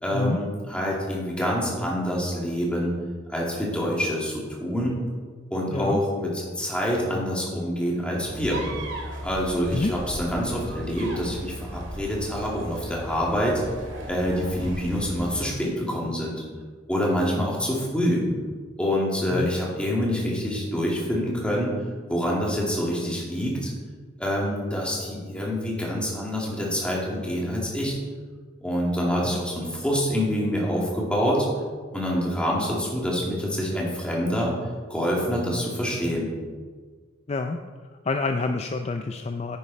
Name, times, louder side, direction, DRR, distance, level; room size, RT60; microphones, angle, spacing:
voice 1, 0.0-2.9 3.3-5.0 5.5-8.6 9.2-13.6 14.1-16.4 16.9-18.2 18.8-21.7 22.1-23.7 24.2-28.0 28.6-31.5 31.9-34.5 34.9-36.3, equal, 5° left, -4 dB, 2.5 m, -26 dB
sound 1, 8.2-15.5, right 1 dB, 70° right, 2.2 m, -36 dB
voice 2, 38.1-39.6, left 3 dB, 35° left, 6 dB, 0.4 m, -27 dB
9.8 x 9.8 x 4.2 m, 1.5 s
head